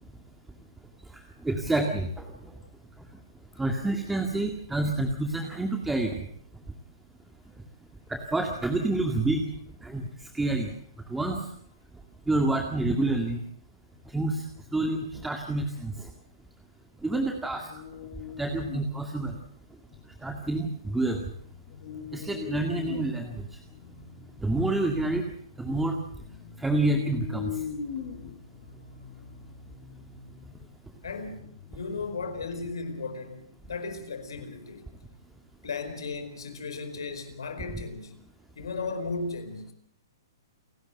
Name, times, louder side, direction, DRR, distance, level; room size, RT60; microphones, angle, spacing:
voice 1, 1.4-2.1 3.6-6.2 8.1-9.4 9.8-10.0 10.3-10.7 11.1-11.4 12.3-13.4 14.1-14.4 14.7-15.9 17.0-17.7 18.4-19.3 20.2-21.2 22.1-23.4 24.4-25.2 25.6-26.0 26.6-27.5, right 2 dB, 5° right, 2.0 m, -27 dB
sound 1, 14.0-15.8 17.5-19.0 19.3-19.4 19.9-20.4 20.9-32.7, left 7 dB, 55° left, 6.5 m, -42 dB
voice 2, 31.0-34.9 35.6-38.1 38.5-39.7, left 4 dB, 80° left, 4.8 m, -36 dB
28.5 x 12.0 x 7.9 m
hypercardioid pair, 130°, 2 cm